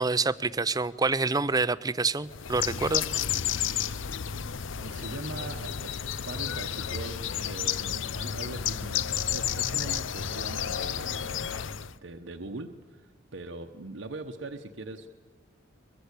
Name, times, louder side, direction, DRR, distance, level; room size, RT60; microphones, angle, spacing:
voice 1, 0.0-3.0, right 3 dB, 20° right, 16 dB, 0.6 m, -27 dB
Bird, 2.3-12.0, left 8 dB, 80° left, 0.7 m, -31 dB
voice 2, 4.8-6.0 6.3-11.7 12.0-15.1, right 2 dB, 75° right, 4 dB, 1.2 m, -41 dB
23.0 x 22.0 x 8.3 m, 1.4 s
head